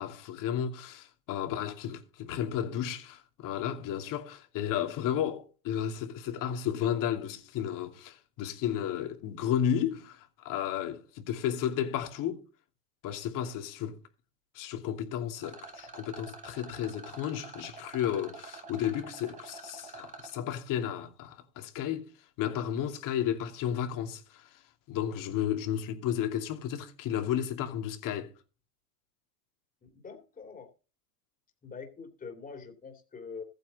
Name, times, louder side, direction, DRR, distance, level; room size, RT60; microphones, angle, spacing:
voice 1, 0.0-12.4 13.0-14.0 14.5-22.1 22.4-24.4 24.9-28.3, left 10 dB, 45° left, 2.7 m, -33 dB
Rattle, 15.4-20.3, right 3 dB, 15° right, 1.8 m, -47 dB
voice 2, 29.8-30.7 31.6-33.4, left 5 dB, 20° left, 3.0 m, -44 dB
14.5 x 9.2 x 4.2 m
supercardioid pair, 125°, 46 cm